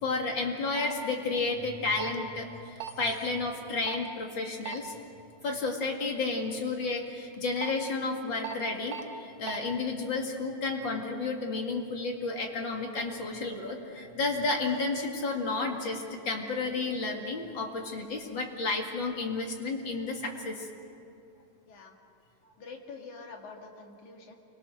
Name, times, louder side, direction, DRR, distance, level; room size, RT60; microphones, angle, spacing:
voice 1, 0.0-4.9 5.4-20.7, left 3 dB, 45° left, 2 dB, 2.7 m, -32 dB
sound 1, 0.8-0.9 2.0-2.2 2.8-3.0 3.9-4.1 4.6-4.8 7.3-7.7 8.4-8.6 8.9-9.0 9.4-9.6, right 8 dB, 70° right, 2.3 m, -37 dB
voice 2, 22.6-24.4, left 4 dB, 85° left, 2 dB, 3.5 m, -46 dB
28.5 x 23.5 x 6.4 m, 2.6 s
omnidirectional pair, 3.3 m